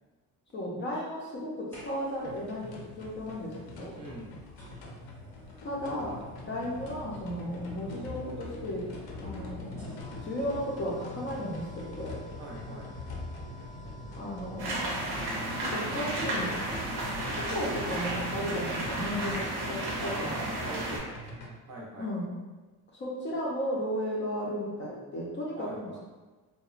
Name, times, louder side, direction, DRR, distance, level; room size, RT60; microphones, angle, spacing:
voice 1, 0.5-4.0 5.6-8.9 9.2-9.8 10.2-12.2 14.2-15.0 15.6-16.6 17.3-20.8 22.0-22.3 22.9-26.0, equal, 30° left, -5 dB, 0.4 m, -35 dB
sound 1, 1.7-2.3 3.7-3.8 4.6-19.6, left 2 dB, 5° left, 0.7 m, -44 dB
sound 2, 2.2-21.5, left 2 dB, 80° left, 0.6 m, -46 dB
voice 2, 3.9-4.4 12.4-12.9 19.9-22.1 25.6-26.0, right 2 dB, 45° right, -2 dB, 0.5 m, -44 dB
sound 3, 14.6-21.0, right 1 dB, 85° right, 0.8 m, -33 dB
2.8 x 2.1 x 2.3 m, 1.2 s
cardioid pair, 155°, 37 cm